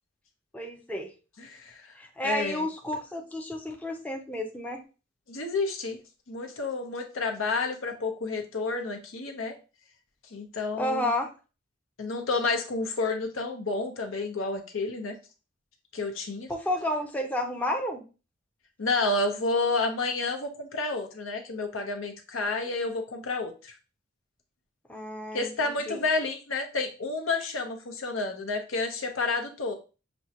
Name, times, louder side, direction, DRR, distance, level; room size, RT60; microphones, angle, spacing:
voice 1, 0.5-1.1 2.0-4.8 10.7-11.3 16.5-18.0 24.9-26.0, left 1 dB, 5° left, 3 dB, 0.5 m, -31 dB
voice 2, 1.4-1.9 2.2-2.7 5.3-6.0 6.3-9.6 10.3-11.1 12.0-15.1 15.9-16.5 18.8-23.8 25.3-29.7, left 3 dB, 90° left, 4 dB, 0.8 m, -30 dB
6.1 x 2.2 x 2.8 m, 0.32 s
head